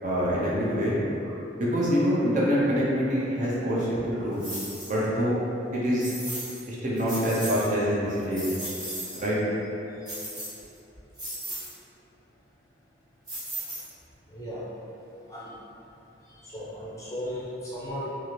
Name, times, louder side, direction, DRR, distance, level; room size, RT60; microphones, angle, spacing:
voice 1, 0.0-1.0 1.6-4.4 4.8-5.4 5.7-6.1 6.7-8.4 9.2-9.4, equal, 40° right, -7 dB, 0.5 m, -25 dB
sound 1, 4.4-4.9 6.0-6.6 7.0-7.7 8.1-9.2 10.0-10.8 11.1-11.7 13.3-14.1, right 1 dB, 20° right, 0.9 m, -36 dB
voice 2, 9.9-10.2 14.3-14.6 15.3-15.5 16.2-18.1, equal, 15° left, -9 dB, 0.5 m, -37 dB
2.7 x 2.4 x 3.0 m, 2.9 s
head